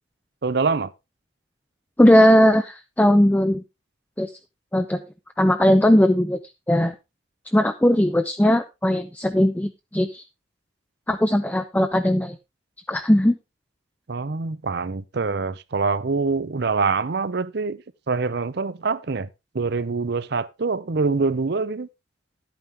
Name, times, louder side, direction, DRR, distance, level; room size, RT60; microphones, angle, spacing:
voice 1, 0.4-0.9 14.1-19.3 19.5-21.9, right 4 dB, 55° right, 0.6 m, -25 dB
voice 2, 2.0-3.6 4.2-4.3 4.7-5.0 5.4-6.4 6.7-6.9 7.5-10.2 11.1-12.4 12.9-13.4, equal, 10° left, 0.5 m, -18 dB
11.0 x 9.0 x 3.4 m
head